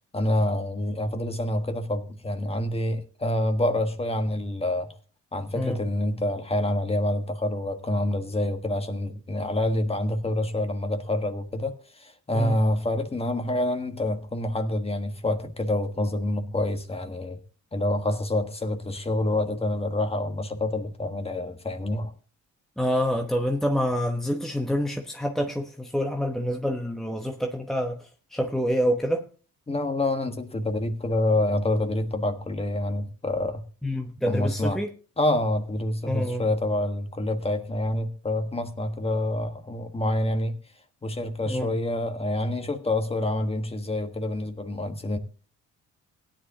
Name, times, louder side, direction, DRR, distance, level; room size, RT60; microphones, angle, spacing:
voice 1, 0.1-4.9 5.3-17.4 17.7-22.1 29.7-33.7 34.3-34.8 35.2-40.5 41.0-45.2, left 1 dB, 20° left, 1.4 m, -27 dB
voice 2, 22.8-29.2 33.8-34.9 36.1-36.4 41.5-41.7, equal, ahead, 1.0 m, -27 dB
17.0 x 10.0 x 2.8 m
cardioid pair, 90°, 30 cm